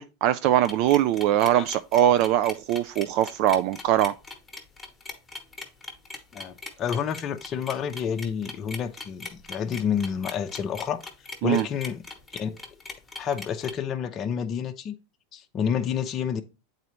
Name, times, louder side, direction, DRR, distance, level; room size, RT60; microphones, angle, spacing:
voice 1, 0.0-4.1 11.4-11.6, right 12 dB, 50° right, 0.3 m, -22 dB
sound 1, 0.6-13.7, left 3 dB, 10° left, 1.1 m, -40 dB
voice 2, 6.3-11.0 11.4-12.0 12.3-12.6 13.2-15.0 15.3-16.4, left 8 dB, 30° left, 0.6 m, -29 dB
8.0 x 4.0 x 3.0 m
supercardioid pair, 140°, 0 cm